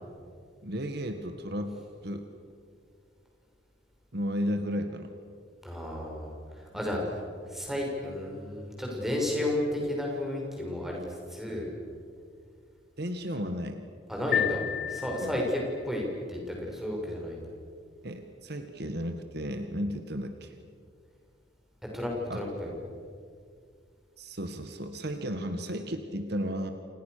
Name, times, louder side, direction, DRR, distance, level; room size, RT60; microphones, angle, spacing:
voice 1, 0.6-1.8 2.0-2.3 4.1-5.2 6.8-7.0 13.0-13.8 15.2-15.4 18.0-20.6 22.3-22.4 24.2-26.7, equal, 55° right, 7 dB, 1.8 m, -34 dB
voice 2, 5.6-6.3 6.7-7.0 7.5-11.0 11.3-11.7 14.1-14.6 14.9-16.0 16.3-17.4 21.9-22.7, left 1 dB, ahead, -1 dB, 6.7 m, -32 dB
sound 1, 14.3-15.8, left 9 dB, 55° left, 1.4 m, -31 dB
30.0 x 28.0 x 6.8 m, 2.2 s
head